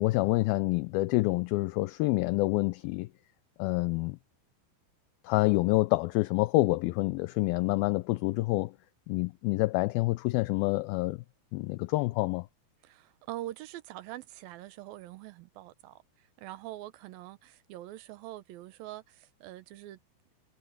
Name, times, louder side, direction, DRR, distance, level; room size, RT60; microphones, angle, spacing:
voice 1, 0.0-3.1 3.6-4.2 5.2-8.8 9.1-11.2 11.5-12.5, left 21 dB, 80° left, 2.2 m, -27 dB
voice 2, 12.8-20.0, right 15 dB, 75° right, 2.5 m, -44 dB
omnidirectional pair, 4.6 m